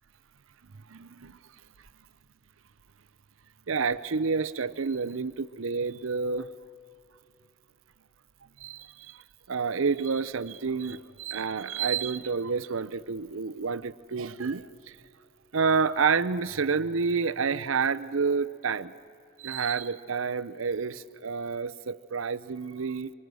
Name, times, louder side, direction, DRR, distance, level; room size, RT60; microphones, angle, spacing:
voice 1, 0.9-1.4 3.7-6.5 8.6-9.2 9.5-15.0 15.5-18.9 19.4-23.1, right 5 dB, 70° right, 14 dB, 0.7 m, -29 dB
25.0 x 25.0 x 6.2 m, 2.6 s
head